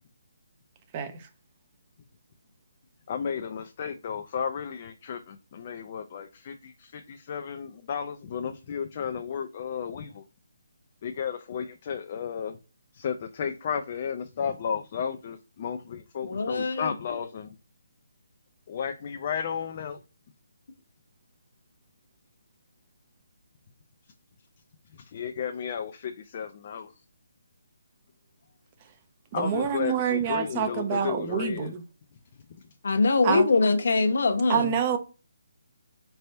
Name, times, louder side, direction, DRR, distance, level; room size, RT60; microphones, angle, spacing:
voice 1, 0.9-1.3 29.3-31.8 33.2-33.5 34.5-35.0, right 8 dB, 20° right, 0.5 m, -27 dB
voice 2, 3.1-10.2 11.0-12.6 12.9-17.5 18.7-20.0 25.1-26.9 29.3-31.7, left 7 dB, 30° left, 0.4 m, -33 dB
voice 3, 16.2-16.9 32.8-34.7, left 3 dB, 60° left, 0.9 m, -23 dB
4.3 x 3.3 x 2.7 m
hypercardioid pair, 170°, 0 cm